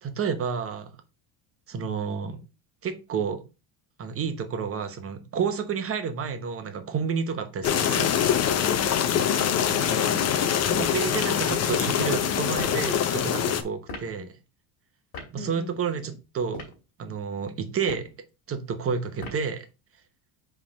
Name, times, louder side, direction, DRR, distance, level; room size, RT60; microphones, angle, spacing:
voice 1, 0.0-0.9 1.7-2.4 2.8-3.4 4.0-8.1 8.6-8.8 10.7-14.3 15.3-16.7 17.0-18.1 18.5-19.7, right 6 dB, 30° right, 8 dB, 1.0 m, -30 dB
sound 1, 7.6-13.6, left 9 dB, 35° left, 0.7 m, -24 dB
voice 2, 9.0-10.6 14.2-14.3 15.4-16.2, left 3 dB, 10° left, 3 dB, 1.2 m, -40 dB
sound 2, 12.6-12.8 13.9-14.1 15.1-15.3 16.4-16.8 17.8-18.2 19.2-19.5, left 2 dB, 50° left, 2.9 m, -39 dB
5.4 x 3.6 x 5.2 m, 0.29 s
cardioid pair, 135°, 45 cm